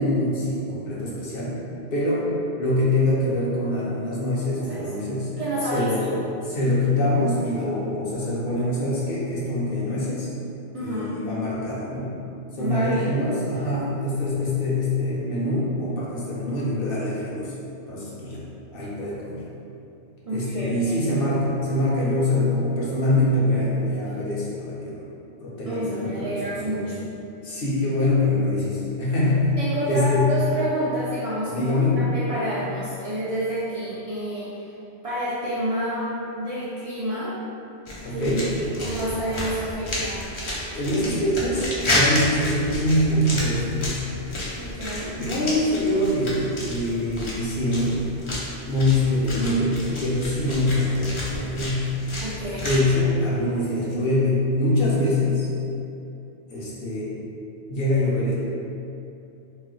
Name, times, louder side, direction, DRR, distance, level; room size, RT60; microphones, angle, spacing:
voice 1, 0.0-1.6 1.9-5.3 5.7-10.3 10.8-12.2 12.5-17.5 17.9-18.4 18.7-19.4 20.3-25.0 25.4-26.9 27.4-30.3 31.5-32.0 38.0-38.5 40.7-44.1 45.1-48.1 48.6-52.0 52.6-55.5 56.5-57.2 57.7-58.3, left 1 dB, 60° left, -6 dB, 0.8 m, -24 dB
voice 2, 5.4-6.1 10.7-11.1 12.6-13.1 20.2-21.0 25.7-27.0 29.6-34.7 35.0-37.3 38.1-40.3 44.6-45.1 52.2-52.7, right 1 dB, 65° right, -8 dB, 0.3 m, -29 dB
sound 1, 37.9-52.8, left 1 dB, 45° left, 0.4 m, -31 dB
2.3 x 2.2 x 3.8 m, 2.7 s
omnidirectional pair, 1.1 m